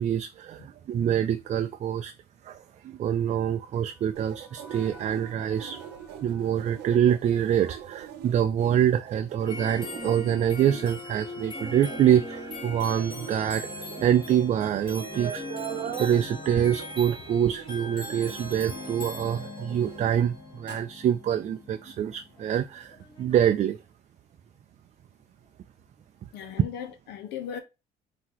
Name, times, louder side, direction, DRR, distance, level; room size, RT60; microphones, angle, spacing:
voice 1, 0.0-2.1 2.4-5.8 6.2-23.8, right 10 dB, 45° right, 0.4 m, -25 dB
sound 1, 3.0-8.3, left 1 dB, ahead, 1.6 m, -54 dB
sound 2, 4.2-20.2, right 10 dB, 85° right, 0.6 m, -44 dB
sound 3, 9.5-23.5, left 2 dB, 30° left, 2.3 m, -40 dB
voice 2, 26.3-27.6, left 8 dB, 85° left, 1.0 m, -37 dB
5.7 x 2.9 x 2.9 m
cardioid pair, 110°, 17 cm